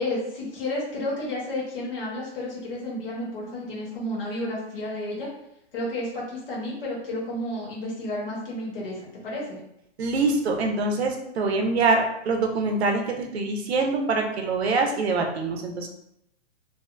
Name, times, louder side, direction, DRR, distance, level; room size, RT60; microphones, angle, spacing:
voice 1, 0.0-5.3 5.7-9.6, left 1 dB, 50° left, -5 dB, 1.1 m, -31 dB
voice 2, 10.0-15.9, right 3 dB, 60° right, 3 dB, 0.6 m, -24 dB
2.6 x 2.3 x 2.4 m, 0.78 s
hypercardioid pair, 180°, 36 cm